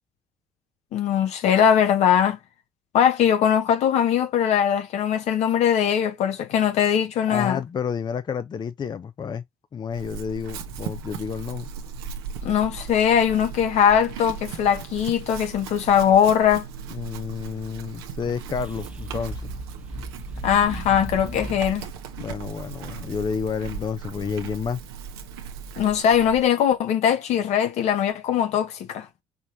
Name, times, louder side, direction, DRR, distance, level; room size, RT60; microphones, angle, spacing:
voice 1, 0.9-2.4 2.9-7.6 12.4-16.6 20.4-21.9 25.8-29.1, left 9 dB, 65° left, 1.0 m, -21 dB
voice 2, 7.3-9.4 9.7-11.7 16.9-19.5 22.2-24.8, left 6 dB, 35° left, 0.5 m, -30 dB
Chewing mastication / Livestock farm animals working animals, 9.9-26.5, right 6 dB, 85° right, 0.8 m, -37 dB
sound 1, 18.3-22.0, equal, 10° right, 0.9 m, -37 dB
5.6 x 3.0 x 2.7 m
hypercardioid pair, 60°, 12 cm